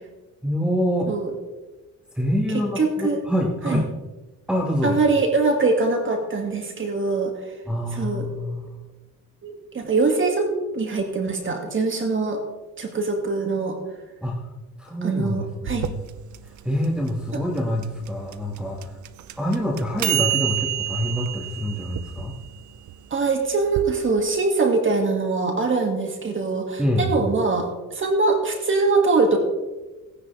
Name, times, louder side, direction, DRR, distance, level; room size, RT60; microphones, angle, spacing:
voice 1, 0.4-1.1 2.2-3.9 4.5-5.0 7.7-8.8 14.2-14.5 14.8-16.0 16.4-19.0 19.4-22.3 26.8-27.1, equal, 5° right, -3 dB, 1.9 m, -26 dB
voice 2, 2.8-3.2 3.6-3.8 4.8-7.3 7.9-8.3 9.4-12.4 12.8-13.8 15.0-15.9 23.1-29.4, right 3 dB, 40° right, 3 dB, 2.3 m, -23 dB
sound 1, 15.7-23.8, right 13 dB, 75° right, 0.7 m, -30 dB
17.5 x 10.0 x 3.4 m, 1.1 s
cardioid pair, 90°, 30 cm